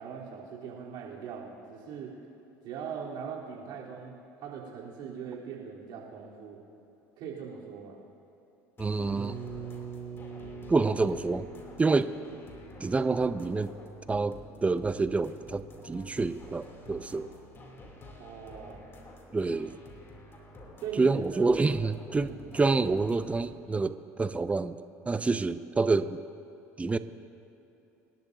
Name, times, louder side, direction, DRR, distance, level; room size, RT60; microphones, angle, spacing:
voice 1, 0.0-2.1 2.6-4.1 4.4-6.6 7.2-8.0 18.2-18.8 20.8-21.5 22.2-22.4, right 7 dB, 60° right, -4 dB, 3.6 m, -41 dB
sound 1, 8.8-23.5, left 1 dB, 30° left, 3.0 m, -49 dB
voice 2, 8.8-9.4 10.7-11.5 11.8-12.1 12.8-13.7 14.1-17.3 19.3-19.8 21.0-24.8 25.0-26.2 26.8-27.0, right 3 dB, 15° right, 13 dB, 0.6 m, -27 dB
sound 2, 9.2-14.9, right 5 dB, 45° right, 2.4 m, -44 dB
26.5 x 12.0 x 2.8 m, 2.9 s
hypercardioid pair, 80°, 8 cm